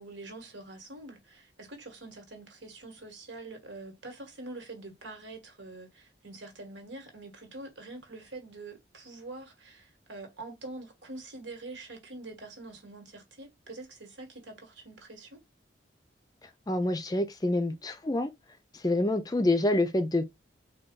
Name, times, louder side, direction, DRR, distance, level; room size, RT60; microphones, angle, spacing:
voice 1, 0.0-15.4, right 2 dB, 85° right, 1.4 m, -45 dB
voice 2, 16.7-18.3 18.8-20.2, left 1 dB, 20° left, 0.4 m, -27 dB
4.0 x 2.3 x 3.7 m
head